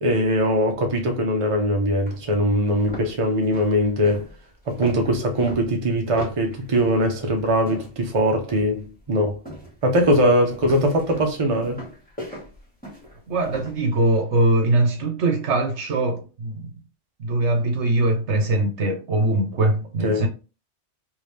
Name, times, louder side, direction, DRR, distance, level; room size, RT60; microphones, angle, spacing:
voice 1, 0.0-4.3 4.7-9.4 9.8-11.8 20.0-20.3, equal, 35° right, 0.7 m, -21 dB
sound 1, 1.5-1.6 2.1-2.2 2.6-8.1 8.5-8.9 9.4-13.8, equal, 5° left, 1.5 m, -38 dB
voice 2, 13.3-16.7 17.2-20.3, right 2 dB, 70° right, 1.1 m, -22 dB
3.6 x 2.7 x 3.2 m
omnidirectional pair, 1.3 m